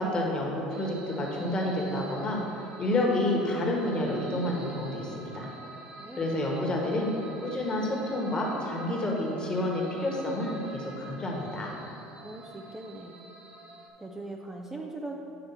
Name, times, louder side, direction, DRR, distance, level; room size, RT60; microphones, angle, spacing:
voice 1, 0.0-5.5 6.2-7.1 7.4-11.7, left 1 dB, 30° left, -2 dB, 1.5 m, -29 dB
sound 1, 0.7-13.9, right 2 dB, 45° right, 0.9 m, -48 dB
voice 2, 6.0-6.4 12.2-13.2 14.0-15.2, right 2 dB, 15° right, 0 dB, 0.6 m, -40 dB
8.0 x 3.2 x 5.7 m, 2.8 s
hypercardioid pair, 80°, 3 cm